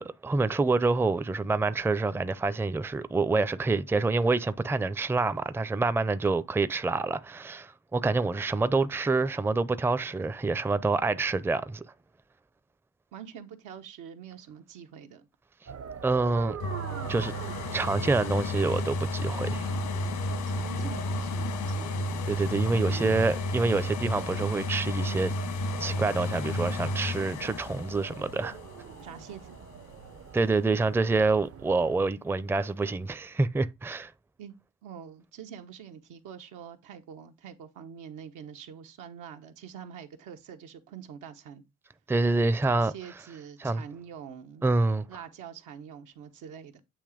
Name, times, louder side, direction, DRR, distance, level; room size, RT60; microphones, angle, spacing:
voice 1, 0.0-11.8 16.0-16.6 17.1-17.3 17.7-19.7 22.3-25.3 25.8-28.6 30.3-34.1 42.1-42.9 43.6-43.8 44.6-45.1, right 3 dB, 10° right, 0.5 m, -27 dB
voice 2, 13.1-15.3 20.4-22.2 22.7-23.3 29.0-29.5 34.4-34.5 34.8-41.6 42.7-44.7 45.1-46.8, right 8 dB, 90° right, 1.2 m, -45 dB
sound 1, 15.7-32.1, right 8 dB, 50° right, 0.7 m, -45 dB
sound 2, 16.6-30.3 30.8-30.9, left 2 dB, 90° left, 1.5 m, -32 dB
8.8 x 2.9 x 4.9 m
cardioid pair, 90°, 30 cm